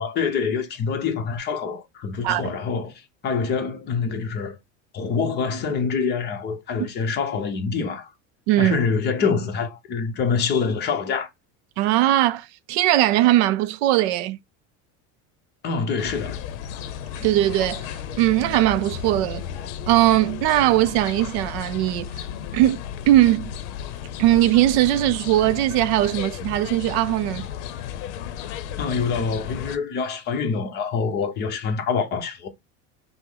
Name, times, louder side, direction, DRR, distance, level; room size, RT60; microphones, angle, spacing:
voice 1, 0.0-4.6 4.9-8.1 8.6-11.3 15.6-16.4 28.8-32.5, left 5 dB, 30° left, 0.8 m, -25 dB
voice 2, 8.5-8.8 11.8-14.4 17.2-17.9 18.2-19.5 19.9-22.1 22.5-23.5 24.2-27.5, right 14 dB, 75° right, 0.6 m, -20 dB
sound 1, 16.0-29.8, left 9 dB, 85° left, 0.7 m, -34 dB
5.7 x 2.0 x 3.6 m
cardioid pair, 165°, 33 cm